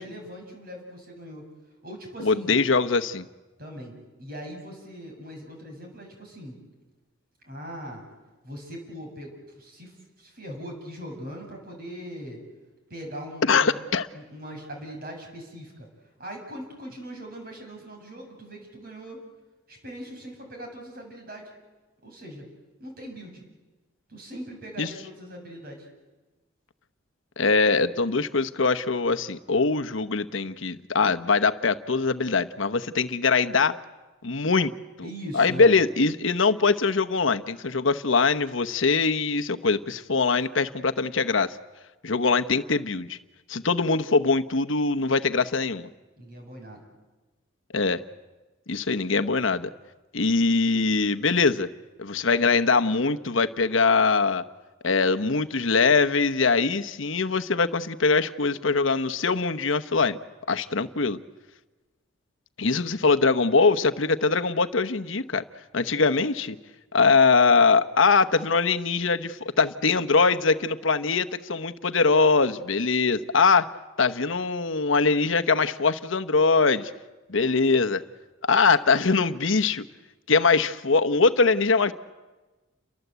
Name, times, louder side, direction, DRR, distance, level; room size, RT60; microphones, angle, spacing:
voice 1, 0.0-1.5 1.8-2.6 3.6-6.6 7.4-8.0 8.4-12.4 12.9-13.8 14.1-15.9 16.2-19.2 19.7-21.5 22.0-22.5 22.8-23.4 24.1-25.9 35.0-35.8 46.2-46.8, equal, 45° right, 2 dB, 7.7 m, -40 dB
voice 2, 2.2-3.3 13.5-14.1 24.8-24.9 27.4-33.7 34.2-34.7 35.0-35.1 35.3-41.6 42.0-43.2 43.5-45.9 47.7-48.0 48.7-49.7 50.1-51.7 52.0-54.4 54.8-60.2 60.5-61.2 62.6-65.4 65.7-66.6 66.9-73.7 74.0-76.9 77.3-78.0 78.4-79.8 80.3-81.9, left 4 dB, 80° left, 9 dB, 1.0 m, -22 dB
29.5 x 23.5 x 8.2 m, 1.2 s
head